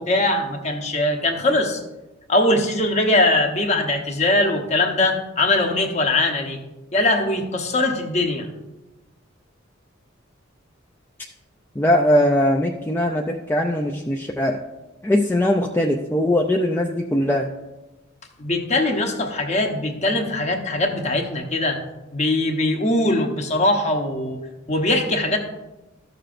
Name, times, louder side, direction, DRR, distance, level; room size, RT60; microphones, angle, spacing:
voice 1, 0.0-1.8 2.3-6.6 6.9-8.5 18.4-21.8 22.1-25.4, left 2 dB, 35° left, 4 dB, 0.9 m, -21 dB
voice 2, 11.8-14.6 15.0-17.5, left 1 dB, 10° left, 1 dB, 0.4 m, -20 dB
13.5 x 6.7 x 2.5 m, 1.0 s
head